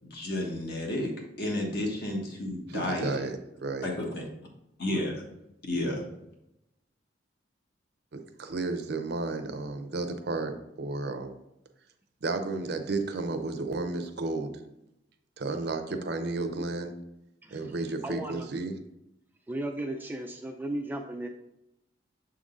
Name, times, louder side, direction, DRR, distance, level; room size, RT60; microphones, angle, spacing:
voice 1, 0.0-1.1 1.4-3.3 3.8-4.2 4.8-5.2 5.6-6.0, left 1 dB, 55° left, 0 dB, 1.4 m, -31 dB
voice 2, 2.7-3.3 3.6-3.9 4.2-4.3 8.1-11.3 12.2-14.5 15.4-16.9 17.5-18.7, right 3 dB, 60° right, 8 dB, 0.6 m, -32 dB
voice 3, 17.4-17.7 18.0-18.5 19.5-21.3, right 1 dB, 10° right, 3 dB, 0.3 m, -35 dB
6.9 x 3.7 x 3.8 m, 0.85 s
head